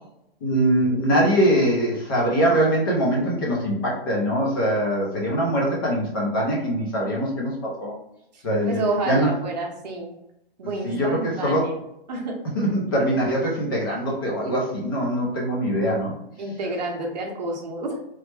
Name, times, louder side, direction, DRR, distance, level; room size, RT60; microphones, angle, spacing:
voice 1, 0.4-7.9 8.4-8.8 9.0-9.3 10.8-11.7 12.5-16.1, right 1 dB, 25° left, -3 dB, 0.5 m, -22 dB
voice 2, 8.3-10.1 10.6-11.8 12.1-12.3 16.4-18.0, right 2 dB, 45° right, 1 dB, 0.8 m, -29 dB
3.1 x 2.1 x 3.2 m, 0.80 s
hypercardioid pair, 170°, 30 cm